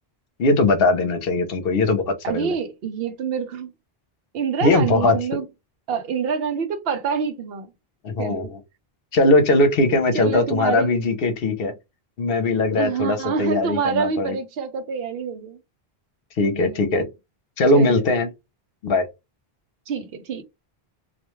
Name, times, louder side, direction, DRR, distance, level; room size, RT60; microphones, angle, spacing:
voice 1, 0.4-2.5 4.6-5.2 8.0-8.6 9.1-11.7 12.2-14.4 16.4-17.1 17.6-18.3 18.8-19.0, left 2 dB, 70° left, 0.9 m, -20 dB
voice 2, 2.2-3.7 4.3-5.5 5.9-7.7 8.2-8.5 10.1-10.9 12.8-15.6 16.4-17.1 17.7-18.0 19.9-20.4, right 6 dB, 70° right, 0.8 m, -27 dB
2.4 x 2.2 x 2.9 m
omnidirectional pair, 1.0 m